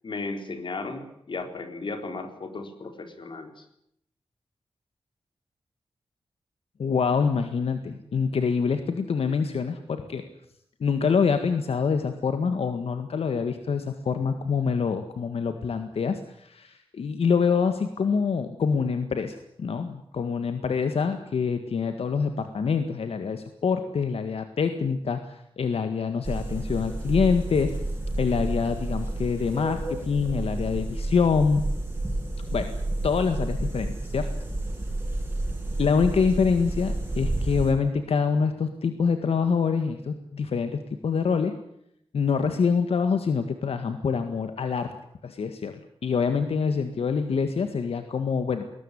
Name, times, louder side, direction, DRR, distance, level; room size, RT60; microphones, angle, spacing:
voice 1, 0.0-3.6, left 3 dB, 55° left, 6 dB, 3.9 m, -35 dB
voice 2, 6.8-10.2 10.8-27.8 28.2-31.7 32.5-32.7 33.0-34.3 35.8-41.6 42.1-44.9 45.2-48.7, left 5 dB, 85° left, 8 dB, 1.8 m, -25 dB
sound 1, 26.2-37.7, right 2 dB, 20° right, 7.3 m, -30 dB
21.0 x 19.5 x 10.0 m, 0.75 s
wide cardioid pair, 155°, 10 cm